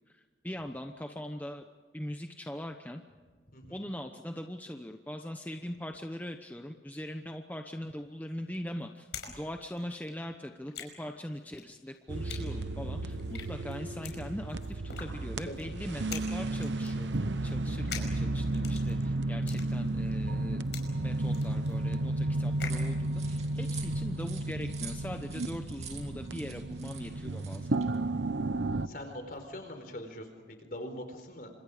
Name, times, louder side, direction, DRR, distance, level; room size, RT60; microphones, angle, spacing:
voice 1, 0.1-1.6 1.9-3.0 3.7-9.1 9.4-17.1 17.4-27.8, equal, 10° left, 5 dB, 0.9 m, -41 dB
sound 1, 7.9-9.4 9.6-22.9, left 7 dB, 70° left, 5.3 m, -46 dB
sound 2, 12.1-28.9, right 2 dB, 80° right, 0.9 m, -33 dB
sound 3, 22.7-28.0, right 8 dB, 35° right, 2.7 m, -48 dB
voice 2, 28.8-31.5, left 1 dB, 50° left, 6 dB, 4.5 m, -42 dB
29.5 x 26.0 x 5.1 m, 1.5 s
head